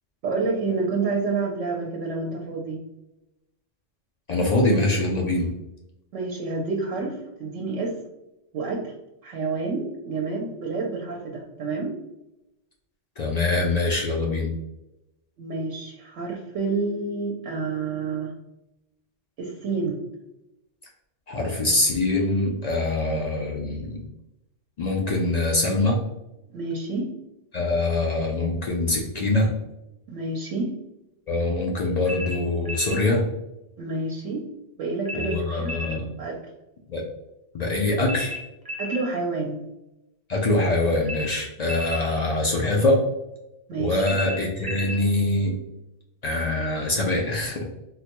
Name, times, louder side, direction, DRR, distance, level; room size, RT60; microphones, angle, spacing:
voice 1, 0.2-2.9 6.1-8.0 8.5-8.9 9.2-12.0 15.4-18.3 19.4-20.0 26.5-27.1 30.1-30.8 33.8-34.5 34.8-35.8 36.2-36.4 38.8-39.6 43.7-44.2, right 3 dB, 80° right, -1 dB, 0.9 m, -29 dB
voice 2, 4.3-5.5 13.2-14.5 21.3-24.0 24.8-26.0 27.5-29.5 31.3-33.3 35.1-36.1 36.9-37.0 37.5-38.4 40.3-43.0 43.8-45.5 46.2-47.6, left 2 dB, 70° left, 0 dB, 0.4 m, -23 dB
sound 1, 32.1-33.0 35.0-36.0 38.0-39.1 41.0-42.1 44.0-45.0, left 1 dB, 30° right, 0.4 m, -34 dB
4.0 x 2.1 x 2.9 m, 0.93 s
omnidirectional pair, 1.3 m